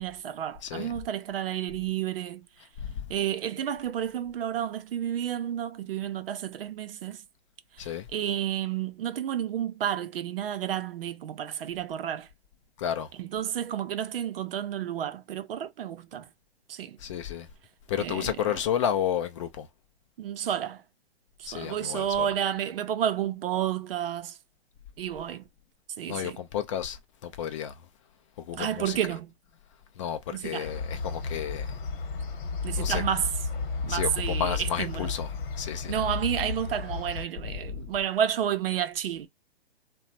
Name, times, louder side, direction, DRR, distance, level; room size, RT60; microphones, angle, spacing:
voice 1, 0.0-2.4 3.1-7.2 7.8-12.3 13.1-16.3 16.7-17.0 18.0-18.5 20.2-20.8 21.4-24.4 25.0-25.4 26.0-26.4 28.5-29.3 30.3-30.7 32.6-33.3 33.8-35.1 35.9-39.3, right 10 dB, 65° right, 0.6 m, -31 dB
voice 2, 12.8-13.1 17.0-17.5 17.9-19.7 21.5-22.3 26.1-27.0 27.2-27.7 28.5-29.0 30.0-31.7 32.7-33.0 33.9-35.3 35.6-35.9, left 9 dB, 30° left, 0.4 m, -31 dB
sound 1, 30.6-37.2, left 4 dB, 50° left, 1.0 m, -33 dB
2.8 x 2.2 x 2.6 m
hypercardioid pair, 135°, 31 cm